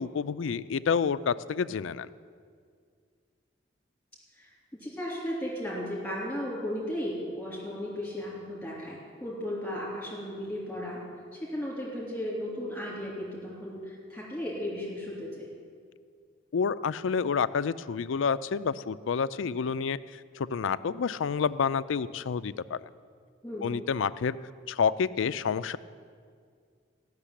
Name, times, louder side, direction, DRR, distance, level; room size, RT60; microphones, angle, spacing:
voice 1, 0.0-2.1 16.5-20.0 20.4-22.8 23.6-24.4 24.7-25.8, left 6 dB, 90° left, 14 dB, 0.4 m, -29 dB
voice 2, 4.8-11.0 11.3-15.5 23.4-23.8, equal, 10° left, -5 dB, 3.4 m, -35 dB
15.0 x 6.7 x 10.0 m, 2.1 s
head